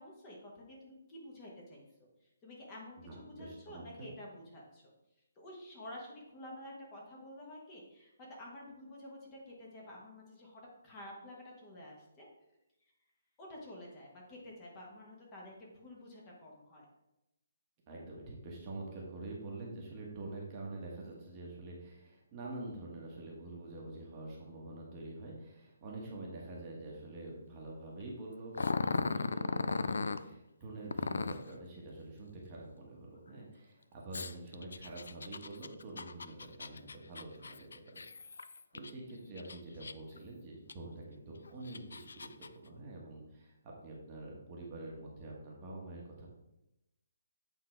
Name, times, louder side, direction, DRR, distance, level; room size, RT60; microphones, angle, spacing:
voice 1, 0.0-1.8 2.4-4.8 5.4-12.3 13.4-16.8, left 1 dB, 20° left, -3 dB, 1.3 m, -50 dB
voice 2, 3.0-4.1 17.9-38.0 38.4-46.3, right 2 dB, 20° right, -3 dB, 1.2 m, -46 dB
Growling, 28.5-30.2 30.9-31.5 34.1-38.9 39.4-40.2 40.7-40.8 41.5-42.5, left 4 dB, 90° left, 0.4 m, -37 dB
8.3 x 3.7 x 4.5 m, 0.90 s
hypercardioid pair, 170°, 0 cm